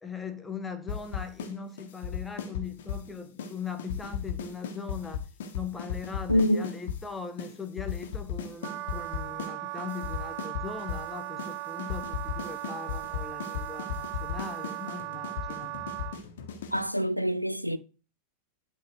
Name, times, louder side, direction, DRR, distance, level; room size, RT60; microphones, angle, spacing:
voice 1, 0.0-5.3 5.5-15.7, left 5 dB, 10° left, 1.2 m, -40 dB
sound 1, 0.9-1.5 1.8-3.1 3.4-3.5 3.8-7.0 7.4-7.5 7.8-9.5 9.8-11.1 11.4-11.5 11.8-16.9, left 8 dB, 60° left, 1.5 m, -36 dB
voice 2, 6.3-6.7 16.7-17.8, equal, 90° left, 0.6 m, -25 dB
Wind instrument woodwind instrument, 8.6-16.2, right 18 dB, 45° right, 0.5 m, -38 dB
11.5 x 3.8 x 4.6 m
figure-of-eight pair, 90°, 0 cm